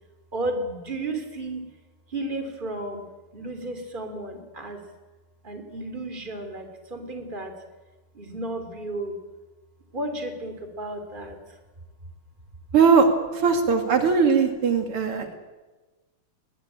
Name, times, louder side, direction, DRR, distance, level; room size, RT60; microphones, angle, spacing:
voice 1, 0.3-1.7 2.1-3.0 3.3-4.8 5.4-7.5 8.1-9.2 9.9-11.6, right 2 dB, 20° right, 6 dB, 3.1 m, -33 dB
voice 2, 12.7-13.1 13.3-15.3, right 5 dB, 80° right, 5 dB, 3.1 m, -19 dB
22.0 x 20.0 x 8.8 m, 1.2 s
omnidirectional pair, 2.4 m